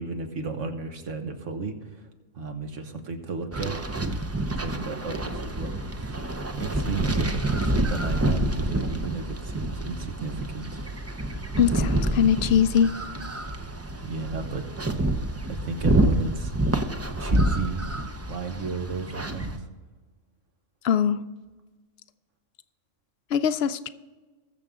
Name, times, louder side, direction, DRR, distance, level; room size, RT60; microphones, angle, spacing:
voice 1, 0.0-2.1 2.3-3.8 4.5-10.9 14.0-16.5 17.2-17.9 18.3-19.7, right 4 dB, 70° right, 5 dB, 1.6 m, -34 dB
sound 1, 3.5-19.6, right 1 dB, 20° right, 0.4 m, -28 dB
voice 2, 11.6-12.9 20.8-21.2 23.3-23.9, left 8 dB, 60° left, 13 dB, 0.7 m, -22 dB
20.5 x 7.0 x 3.7 m, 1.3 s
omnidirectional pair, 1.3 m